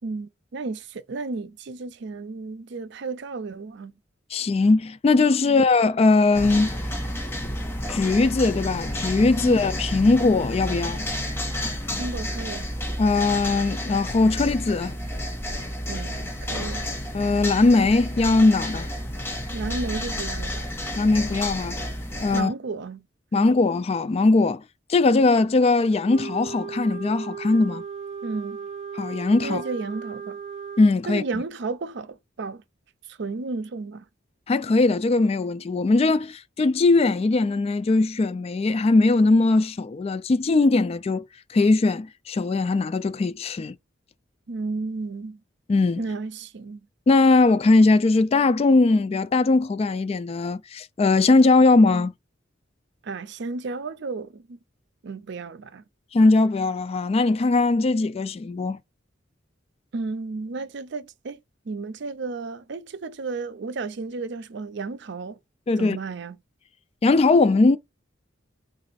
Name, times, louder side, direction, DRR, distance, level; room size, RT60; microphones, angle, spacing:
voice 1, 0.0-3.9 5.4-5.6 9.4-9.6 12.0-12.7 15.9-16.9 19.5-20.7 22.3-23.0 23.3-23.5 28.2-28.6 29.4-30.4 31.1-32.6 33.1-34.1 44.5-45.4 46.0-46.9 53.0-54.6 55.0-55.8 59.9-61.4 61.7-65.4 65.8-66.4, right 3 dB, 65° right, 0.5 m, -33 dB
voice 2, 4.3-6.7 7.9-11.1 13.0-14.9 17.1-18.9 21.0-21.8 22.2-22.5 23.3-24.6 24.9-27.8 28.9-29.6 30.8-31.2 34.5-43.8 45.7-46.0 47.1-52.1 56.1-58.8 65.7-66.0 67.0-67.8, left 3 dB, 35° left, 0.3 m, -20 dB
sound 1, 6.3-22.4, equal, 15° left, 1.0 m, -31 dB
Wind instrument woodwind instrument, 26.0-30.9, right 6 dB, 35° right, 1.0 m, -36 dB
4.0 x 2.5 x 4.0 m
head